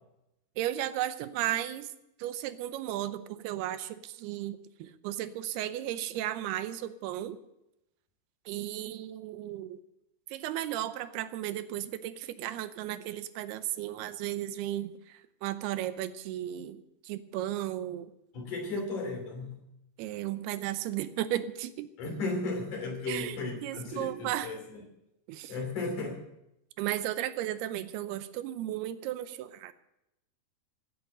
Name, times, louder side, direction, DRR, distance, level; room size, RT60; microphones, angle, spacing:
voice 1, 0.6-1.9 2.2-7.4 8.5-9.8 10.3-18.1 18.8-18.9 20.0-21.9 23.1-24.5 25.3-25.5 26.8-29.7, right 13 dB, 90° right, 13 dB, 2.8 m, -35 dB
voice 2, 18.3-19.6 22.0-24.8 25.5-26.2, left 3 dB, 55° left, 3 dB, 4.1 m, -35 dB
14.5 x 9.7 x 7.9 m, 0.86 s
omnidirectional pair, 4.6 m